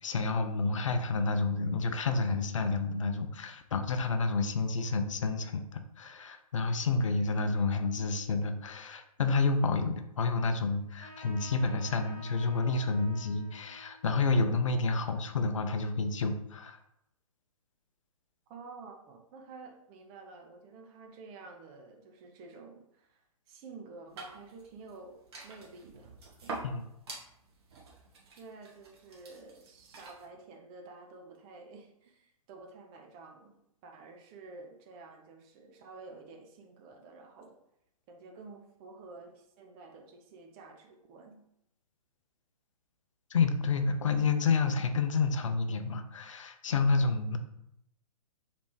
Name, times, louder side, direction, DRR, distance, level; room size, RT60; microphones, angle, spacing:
voice 1, 0.0-16.8 26.6-26.8 43.3-47.4, left 4 dB, 55° left, 7 dB, 0.5 m, -29 dB
Trumpet, 11.0-16.0, left 1 dB, 85° right, 1.6 m, -52 dB
voice 2, 18.5-25.2 25.4-26.4 28.3-37.6 38.1-41.4, right 3 dB, 20° right, 3 dB, 0.4 m, -50 dB
sound 1, 24.1-30.3, right 3 dB, 45° right, 1.2 m, -47 dB
3.3 x 3.0 x 4.6 m, 0.80 s
figure-of-eight pair, 120°, 19 cm